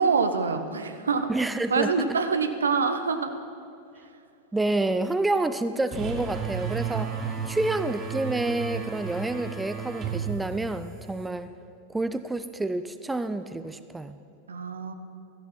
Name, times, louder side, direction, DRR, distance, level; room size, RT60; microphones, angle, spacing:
voice 1, 0.0-1.3 1.7-3.3 14.5-14.9, right 5 dB, 70° right, 9 dB, 0.9 m, -25 dB
voice 2, 1.3-1.9 4.5-7.1 7.5-11.5 11.9-14.2, right 2 dB, 10° right, 11 dB, 0.5 m, -28 dB
sound 1, 5.9-11.3, right 6 dB, 30° right, 1.6 m, -33 dB
16.0 x 14.0 x 4.2 m, 2.6 s
figure-of-eight pair, 90°, 0 cm